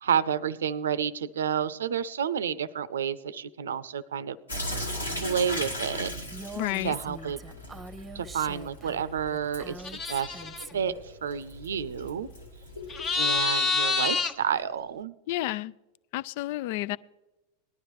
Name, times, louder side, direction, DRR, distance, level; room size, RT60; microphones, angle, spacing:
voice 1, 0.0-4.4 5.2-6.1 6.8-7.4 8.1-10.4 10.7-10.9 11.2-12.3 13.2-15.1, right 8 dB, 75° right, 0.6 m, -30 dB
Sink (filling or washing) / Drip, 4.5-13.4, equal, 85° left, 2.1 m, -38 dB
Female speech woman speaking, 6.3-11.0, right 3 dB, 15° right, 0.9 m, -43 dB
voice 2, 6.6-6.9 15.3-15.7 16.1-17.0, left 16 dB, 55° left, 0.3 m, -30 dB
sound 1, 9.8-10.6 12.9-14.3, left 4 dB, 35° left, 1.1 m, -27 dB
19.0 x 11.5 x 3.2 m
figure-of-eight pair, 90°, 0 cm